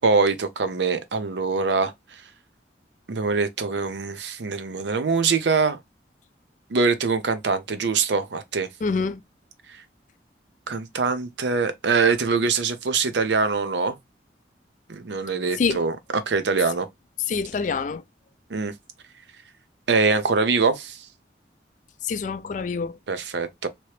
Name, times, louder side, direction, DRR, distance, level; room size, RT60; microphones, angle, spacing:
voice 1, 0.0-1.9 3.1-5.8 6.7-8.7 10.7-14.0 14.9-16.9 18.5-18.7 19.9-21.0 23.1-23.7, right 4 dB, 80° right, 0.6 m, -23 dB
voice 2, 8.8-9.2 15.6-15.8 17.3-18.0 22.0-23.0, left 5 dB, 45° left, 0.3 m, -26 dB
3.0 x 2.9 x 3.0 m
head